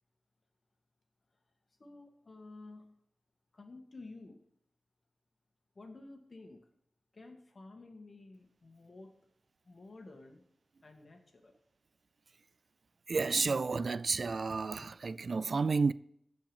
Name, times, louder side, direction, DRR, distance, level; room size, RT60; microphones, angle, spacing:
voice 1, 1.8-3.0 3.5-4.4 5.7-6.7 7.1-9.2 9.6-10.4 10.8-11.5, left 2 dB, 45° left, 2.2 m, -52 dB
voice 2, 13.1-15.9, right 4 dB, 60° right, 0.3 m, -31 dB
14.5 x 5.4 x 7.3 m
wide cardioid pair, 80°, 0 cm